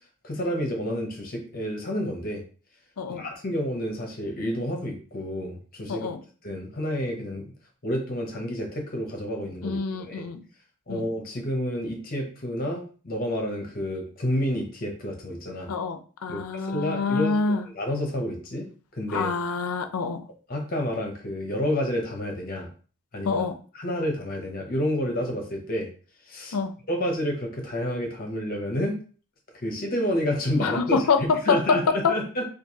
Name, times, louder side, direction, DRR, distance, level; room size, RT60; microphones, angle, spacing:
voice 1, 0.2-2.4 3.1-6.1 6.4-7.5 7.8-10.3 10.9-15.7 16.3-18.7 18.9-19.3 20.5-22.7 23.1-23.4 23.7-25.9 26.3-26.6 26.9-29.0 29.5-31.0 31.5-31.8 32.1-32.4, equal, 40° left, 2 dB, 0.8 m, -29 dB
voice 2, 5.9-6.2 9.6-10.4 10.9-11.1 15.7-17.7 19.1-20.2 23.2-23.6 26.5-26.7 30.6-32.1, left 4 dB, 90° left, 9 dB, 0.5 m, -26 dB
4.5 x 2.4 x 2.8 m, 0.39 s
head